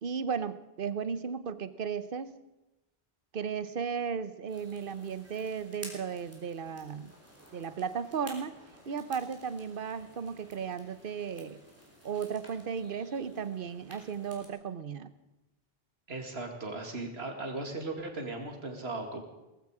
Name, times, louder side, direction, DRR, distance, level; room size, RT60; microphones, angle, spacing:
voice 1, 0.0-2.3 3.3-7.1 7.5-8.5 8.9-11.6 12.0-15.1, right 6 dB, 60° right, 13 dB, 1.0 m, -35 dB
sound 1, 4.5-14.5, equal, 15° right, 3.3 m, -53 dB
voice 2, 16.1-19.2, right 2 dB, 80° right, 3 dB, 2.5 m, -37 dB
18.5 x 15.0 x 4.9 m, 0.99 s
omnidirectional pair, 1.0 m